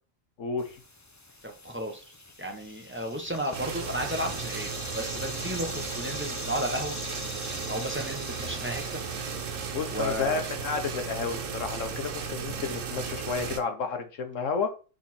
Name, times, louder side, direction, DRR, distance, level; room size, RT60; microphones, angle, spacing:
voice 1, 0.4-0.8 9.7-14.7, left 5 dB, 90° left, 7 dB, 1.5 m, -31 dB
sound 1, 0.6-11.6, left 2 dB, 20° left, 0.6 m, -43 dB
voice 2, 1.4-2.0 2.4-4.7 4.9-7.0 7.7-9.0 9.9-10.5, right 1 dB, 10° right, 3 dB, 1.1 m, -33 dB
sound 2, 3.5-13.6, right 6 dB, 85° right, 1.3 m, -35 dB
5.9 x 4.2 x 4.4 m, 0.35 s
omnidirectional pair, 1.3 m